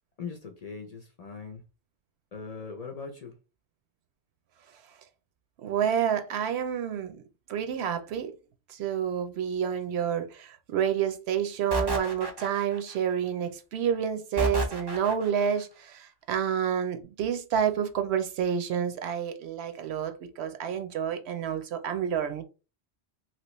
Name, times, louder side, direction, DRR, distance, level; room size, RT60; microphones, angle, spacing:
voice 1, 0.2-1.6 2.3-3.3, left 5 dB, 50° left, 0.5 m, -40 dB
voice 2, 5.6-7.2 7.5-8.4 8.7-22.4, right 8 dB, 80° right, 0.8 m, -29 dB
sound 1, 11.7-13.0 14.4-15.5, equal, 30° right, 0.5 m, -31 dB
2.9 x 2.9 x 3.0 m
omnidirectional pair, 1.1 m